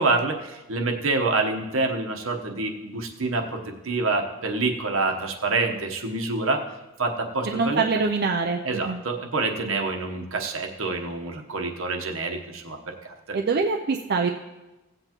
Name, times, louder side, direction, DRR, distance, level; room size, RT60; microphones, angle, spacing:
voice 1, 0.0-6.6 7.0-7.8 8.6-12.8 13.0-13.4, right 3 dB, 70° right, 3 dB, 1.1 m, -27 dB
voice 2, 7.4-9.0 13.3-14.3, right 4 dB, 50° right, 3 dB, 0.4 m, -24 dB
16.5 x 7.9 x 3.0 m, 1.1 s
head